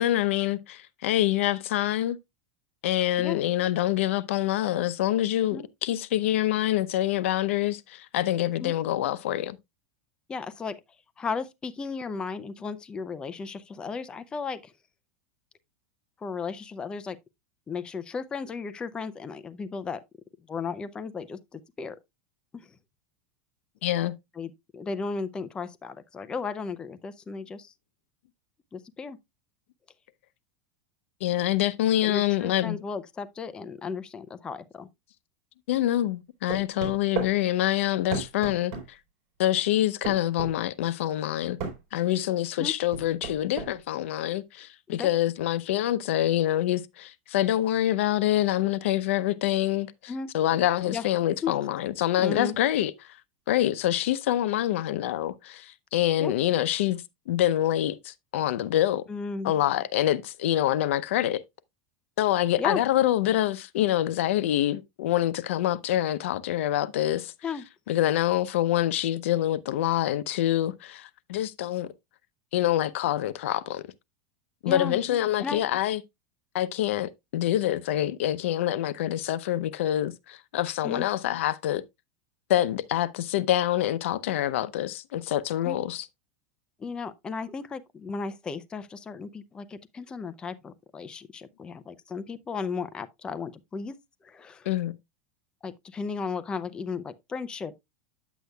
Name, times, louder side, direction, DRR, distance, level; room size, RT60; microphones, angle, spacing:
voice 1, 0.0-2.2 2.8-9.6 23.8-24.1 31.2-32.8 35.7-39.0 39.4-41.6 41.9-52.9 53.5-59.0 59.4-61.4 62.2-67.3 67.9-71.9 72.5-73.8 74.6-76.0 76.5-81.8 82.5-86.1 94.7-95.0, left 13 dB, 80° left, 0.6 m, -26 dB
voice 2, 10.3-10.8 11.2-14.7 16.2-17.2 17.7-20.0 20.5-22.0 22.5-22.7 24.4-27.7 28.7-29.2 32.0-34.9 42.6-42.7 45.0-45.1 50.1-50.3 50.9-51.1 51.4-51.5 52.2-52.5 56.2-56.3 59.1-59.5 62.6-62.8 67.4-67.7 74.7-75.0 75.4-75.6 80.8-81.1 85.6-85.8 86.8-93.9 94.2-94.7 95.6-97.8, left 5 dB, 15° left, 0.5 m, -35 dB
sound 1, 36.5-37.3 38.1-38.9 40.0-40.5 41.6-41.8 42.9-43.7, right 6 dB, 45° right, 3.9 m, -33 dB
9.2 x 8.1 x 2.2 m
supercardioid pair, 160°, 7 cm